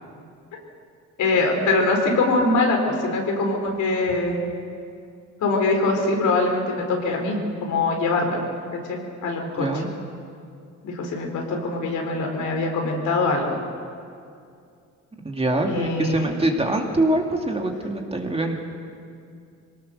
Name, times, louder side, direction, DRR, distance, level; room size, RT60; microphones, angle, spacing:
voice 1, 1.2-4.4 5.4-8.4 8.7-9.7 10.8-13.6 15.6-16.4, left 2 dB, 75° left, 1 dB, 4.4 m, -23 dB
voice 2, 9.6-9.9 15.2-18.6, right 1 dB, 20° right, 2 dB, 2.5 m, -24 dB
23.0 x 19.0 x 6.7 m, 2.4 s
cardioid pair, 90°, 30 cm